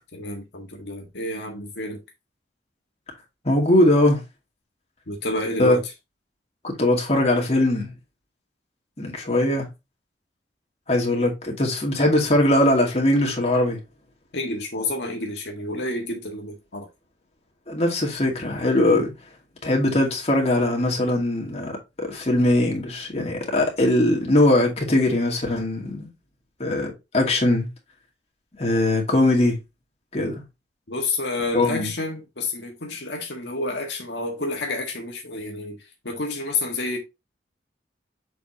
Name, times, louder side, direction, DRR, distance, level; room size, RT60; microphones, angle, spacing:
voice 1, 0.1-2.0 5.1-5.9 14.3-16.9 30.9-35.8 36.0-37.0, left 2 dB, 80° left, 1.6 m, -29 dB
voice 2, 3.4-4.2 5.6-5.8 6.6-7.9 9.0-9.7 10.9-13.8 17.7-19.1 19.6-21.7 22.0-26.1 26.6-27.7 28.6-29.6 30.1-30.4 31.5-31.9, left 1 dB, 35° left, 2.2 m, -21 dB
7.0 x 5.0 x 2.8 m
head